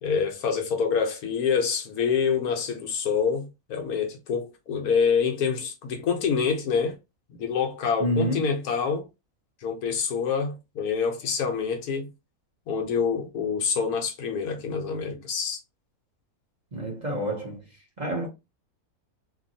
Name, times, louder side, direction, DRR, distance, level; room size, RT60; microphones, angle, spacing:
voice 1, 0.0-7.0 7.4-9.0 9.6-12.1 12.7-15.6, left 6 dB, 75° left, 1.2 m, -26 dB
voice 2, 8.0-8.5 16.7-17.6 18.0-18.3, equal, 40° right, 0.7 m, -28 dB
2.8 x 2.6 x 2.6 m
omnidirectional pair, 1.6 m